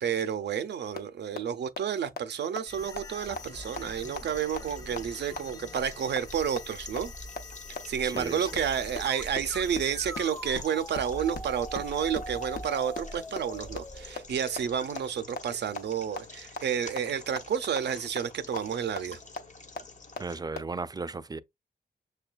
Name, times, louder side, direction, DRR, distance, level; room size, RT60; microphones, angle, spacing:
voice 1, 0.0-7.1 7.9-19.2, right 8 dB, 80° right, 0.5 m, -30 dB
sound 1, 1.0-1.1 1.4-1.5 1.8-1.9 2.2-2.3 2.6-2.7 3.0-3.1 3.4-3.5 3.8-3.9 4.2-4.3 4.6-4.7 5.0-5.1 5.4-5.5 5.8-5.9 6.2-6.3 6.6-6.7 7.0-7.1 7.4-7.5 7.8-7.9 8.2-8.3 8.6-8.7 9.0-9.1 9.4-9.5 9.8-9.9 10.1-10.2 10.5-10.6 10.9-11.0 11.3-11.4 11.7-11.8 12.1-12.2 12.6-12.7 13.0-13.1 13.4-13.5 13.8-13.9 14.2-14.3 14.6-14.7 15.0-15.1 15.4-15.5 15.8-15.9 16.2-16.3 16.6-16.7 17.0-17.1 17.4-17.5 17.8-17.9 18.2-18.3 18.6-18.7 19.0-19.1 19.4-19.5 19.8-19.9 20.2-20.3 20.6-20.7, left 3 dB, 65° left, 0.8 m, -33 dB
sound 2, 2.7-14.8, left 1 dB, 20° left, 0.7 m, -42 dB
sound 3, 3.0-20.4, left 3 dB, 45° left, 1.0 m, -49 dB
voice 2, 8.0-8.5 20.2-21.4, right 3 dB, 20° right, 0.4 m, -35 dB
6.4 x 2.2 x 2.3 m
cardioid pair, 60°, 17 cm